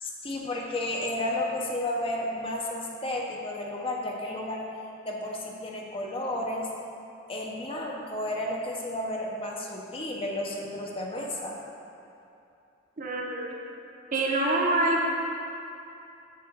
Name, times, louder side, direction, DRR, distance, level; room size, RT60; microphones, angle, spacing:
voice 1, 0.0-4.7 5.1-6.7 7.3-11.6, left 1 dB, 25° left, -1 dB, 0.6 m, -32 dB
voice 2, 13.0-13.5 14.1-15.2, right 2 dB, 40° right, -2 dB, 0.8 m, -26 dB
6.7 x 3.8 x 5.1 m, 2.7 s
head